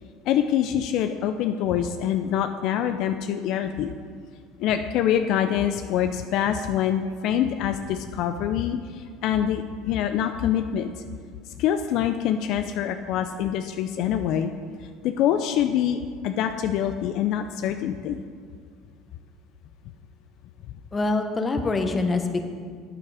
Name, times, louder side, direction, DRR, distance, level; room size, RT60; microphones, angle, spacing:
voice 1, 0.3-3.9 4.6-10.9 11.6-14.5 15.0-18.2, left 10 dB, 65° left, 8 dB, 0.5 m, -25 dB
voice 2, 20.9-22.4, left 3 dB, 25° left, 6 dB, 1.0 m, -24 dB
8.9 x 8.5 x 4.8 m, 2.1 s
supercardioid pair, 90°, 0 cm